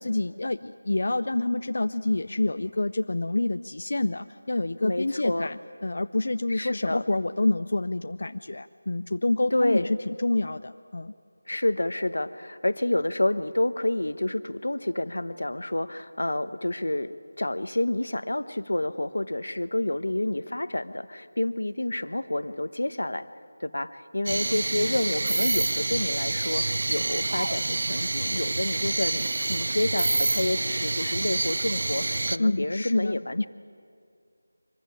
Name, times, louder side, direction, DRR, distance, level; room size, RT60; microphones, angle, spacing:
voice 1, 0.0-11.1 32.4-33.2, left 2 dB, 55° left, 10 dB, 0.5 m, -27 dB
voice 2, 4.8-5.5 6.5-7.0 9.5-9.9 11.5-23.3 23.6-33.5, left 1 dB, 85° left, 12 dB, 1.1 m, -29 dB
sound 1, 24.3-32.4, right 2 dB, 45° right, 0.5 m, -27 dB
24.0 x 15.0 x 10.0 m, 2.4 s
figure-of-eight pair, 175°, 0 cm